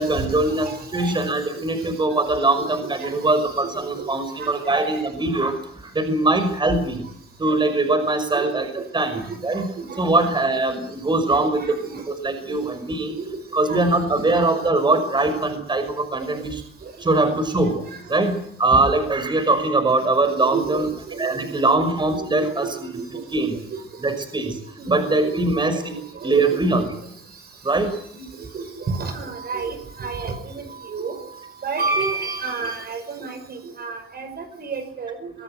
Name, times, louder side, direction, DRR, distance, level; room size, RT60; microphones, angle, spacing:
voice 1, 0.0-7.0 7.4-9.6 10.0-13.2 13.5-16.6 17.0-17.7 18.1-20.9 21.2-23.0 23.3-23.6 24.0-24.6 24.9-26.0 26.2-26.9 27.6-27.9, right 2 dB, 20° right, 8 dB, 5.8 m, -22 dB
voice 2, 0.6-1.2 2.6-3.1 4.0-4.1 4.4-4.8 6.7-6.8 8.3-8.4 9.1-10.3 11.4-12.0 13.2-13.3 13.7-13.8 14.3-14.5 15.3-15.4 16.2-16.3 17.6-18.0 20.4-21.7 22.1-22.5 22.9-23.1 23.5-23.8 24.8-25.0 25.3-25.6 26.2-26.3 26.7-26.9 28.1-31.2 31.6-35.3, right 4 dB, 50° right, 6 dB, 5.5 m, -31 dB
25.0 x 17.0 x 7.8 m, 0.66 s
cardioid pair, 115°, 21 cm